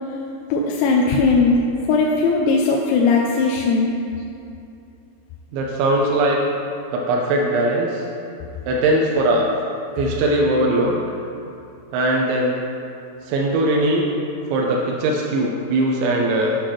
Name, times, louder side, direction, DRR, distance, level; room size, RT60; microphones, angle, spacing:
voice 1, 0.5-1.6 1.9-3.9, left 4 dB, 80° left, -1 dB, 2.7 m, -18 dB
voice 2, 5.5-6.4 6.9-8.1 8.7-9.5 10.0-11.0 11.9-12.6 13.2-14.1 14.5-16.6, right 1 dB, 80° right, -1 dB, 2.9 m, -20 dB
8.2 x 6.4 x 5.9 m, 2.7 s
omnidirectional pair, 5.7 m